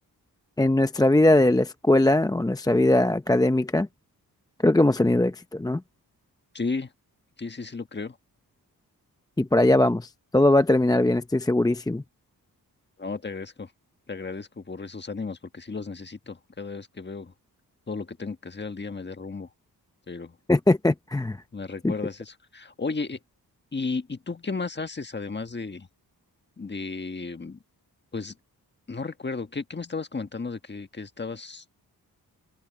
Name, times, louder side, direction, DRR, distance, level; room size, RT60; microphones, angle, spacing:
voice 1, 0.6-3.9 4.6-5.8 9.4-12.0 20.5-21.4 21.8-21.9, left 1 dB, 10° left, 0.6 m, -20 dB
voice 2, 6.5-6.9 7.4-8.2 13.0-13.7 14.1-17.3 17.9-19.5 20.1-20.3 21.5-23.2 23.7-25.9 26.6-27.6 28.1-28.3 28.9-31.6, left 4 dB, 30° left, 1.4 m, -34 dB
open air
cardioid pair, 85°, 38 cm